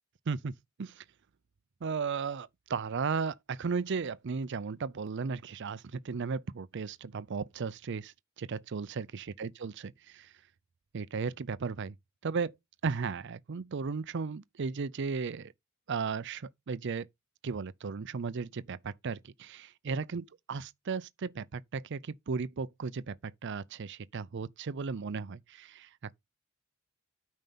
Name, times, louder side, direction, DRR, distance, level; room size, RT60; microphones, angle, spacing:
voice 1, 1.8-10.3 10.9-11.9 12.2-12.5 12.8-15.5 15.9-17.1 17.4-26.1, right 5 dB, 55° right, 0.5 m, -35 dB
9.2 x 5.4 x 5.4 m
head